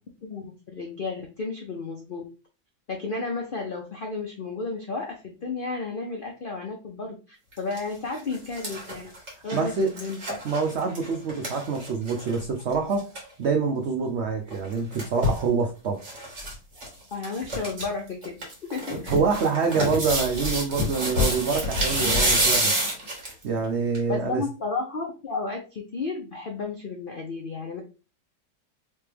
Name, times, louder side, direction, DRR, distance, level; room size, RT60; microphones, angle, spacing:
voice 1, 0.2-2.2 2.9-9.0 9.4-10.2 17.1-19.1 24.1-27.8, left 3 dB, 75° left, 2 dB, 0.5 m, -33 dB
sound 1, 7.5-7.8 8.2-12.4 12.7-12.8 13.0-13.2 14.5-15.4 16.0-16.5 16.8-16.9 17.2-17.8 18.2-23.4 23.9-24.0, equal, 40° right, 2.0 m, -27 dB
voice 2, 9.5-9.9 10.4-13.1 13.4-16.2 19.1-22.8 23.4-24.4, right 5 dB, 75° right, 3 dB, 0.6 m, -26 dB
3.4 x 3.3 x 3.3 m, 0.32 s
omnidirectional pair, 1.9 m